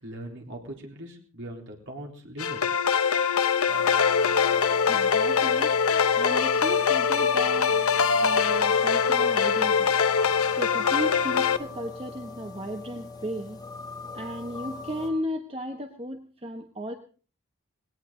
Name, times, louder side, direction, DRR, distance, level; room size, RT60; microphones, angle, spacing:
voice 1, 0.0-2.6, right 1 dB, 55° right, 1 dB, 3.9 m, -40 dB
sound 1, 2.4-11.6, left 6 dB, 75° left, 0.9 m, -23 dB
sound 2, 3.7-15.1, left 4 dB, 15° left, 2.6 m, -40 dB
voice 2, 4.9-5.7 6.2-7.8 8.2-9.9 10.5-13.6 14.1-16.9, equal, 25° right, 5 dB, 1.1 m, -35 dB
19.5 x 17.5 x 3.8 m, 0.38 s
head